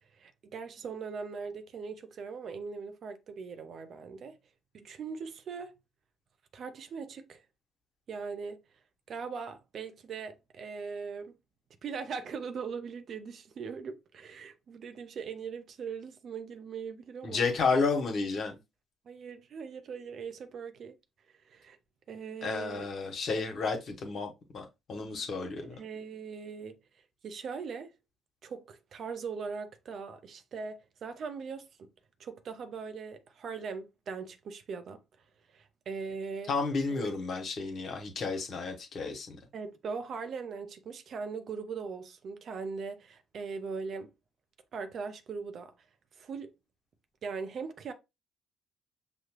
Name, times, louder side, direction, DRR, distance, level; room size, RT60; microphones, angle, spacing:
voice 1, 0.1-4.4 4.7-5.8 6.5-7.4 8.1-8.6 9.1-11.3 11.8-17.4 19.1-21.0 21.4-21.8 22.1-22.9 25.7-26.8 27.2-27.9 28.4-31.9 32.2-35.0 35.5-36.5 36.9-37.1 39.5-44.1 44.7-45.7 46.2-46.5 47.2-47.9, right 5 dB, 55° right, 0.7 m, -40 dB
voice 2, 17.2-18.6 22.4-25.8 36.5-39.4, left 4 dB, 55° left, 1.2 m, -32 dB
6.1 x 2.2 x 3.0 m
hypercardioid pair, 45°, 0 cm